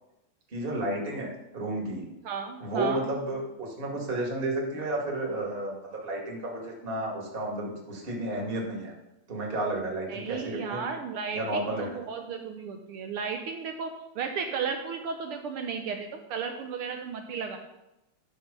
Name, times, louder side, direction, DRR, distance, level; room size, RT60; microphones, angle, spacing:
voice 1, 0.5-2.0 2.6-8.9 9.3-10.8 11.3-12.0, right 1 dB, 20° right, -2 dB, 1.9 m, -32 dB
voice 2, 2.2-3.0 10.1-17.6, right 6 dB, 80° right, 5 dB, 1.2 m, -34 dB
10.5 x 6.1 x 5.4 m, 0.92 s
omnidirectional pair, 3.3 m